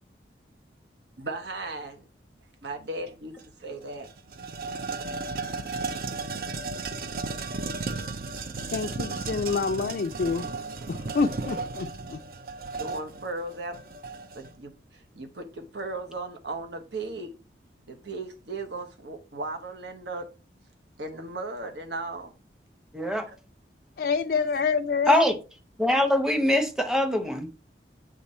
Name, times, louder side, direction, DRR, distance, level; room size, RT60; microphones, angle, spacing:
voice 1, 1.2-2.1 2.6-4.1 12.8-13.8 14.3-17.3 17.9-20.3 21.0-22.3 23.3-23.4, right 2 dB, 75° right, 1.0 m, -36 dB
sound 1, 3.4-3.5 3.8-14.5, right 4 dB, 55° right, 0.5 m, -34 dB
voice 2, 8.7-10.4 10.9-12.2 24.0-25.2, left 5 dB, 60° left, 0.3 m, -27 dB
voice 3, 22.9-23.3 25.1-25.4 25.8-27.5, left 1 dB, 5° right, 0.8 m, -23 dB
7.2 x 3.6 x 4.2 m
head